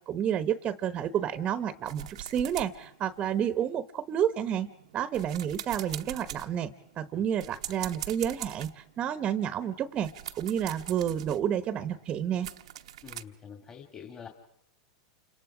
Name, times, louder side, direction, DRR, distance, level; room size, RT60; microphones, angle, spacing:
voice 1, 0.1-4.7 4.9-12.5, right 9 dB, 35° right, 13 dB, 1.0 m, -30 dB
sound 1, 1.8-3.8 4.3-13.2, right 12 dB, 80° right, 1.0 m, -43 dB
voice 2, 13.0-14.3, left 7 dB, 25° left, 4 dB, 2.6 m, -46 dB
29.0 x 26.0 x 5.0 m, 0.76 s
hypercardioid pair, 115°, 3 cm